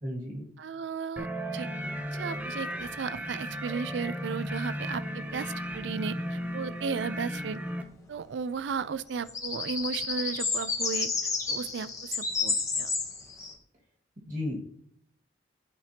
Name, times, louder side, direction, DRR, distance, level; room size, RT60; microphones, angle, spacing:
voice 1, 0.0-0.5 14.3-14.6, left 1 dB, 40° right, -1 dB, 1.8 m, -33 dB
voice 2, 0.6-1.7 2.1-7.6 8.1-11.1 11.5-12.9, right 5 dB, 75° right, 16 dB, 0.4 m, -35 dB
sound 1, 1.2-7.8, equal, 10° right, 0.5 m, -35 dB
sound 2, 1.8-2.9 3.2-3.3 9.0-13.5, left 4 dB, 15° left, 0.9 m, -31 dB
12.5 x 5.1 x 2.8 m, 0.67 s
head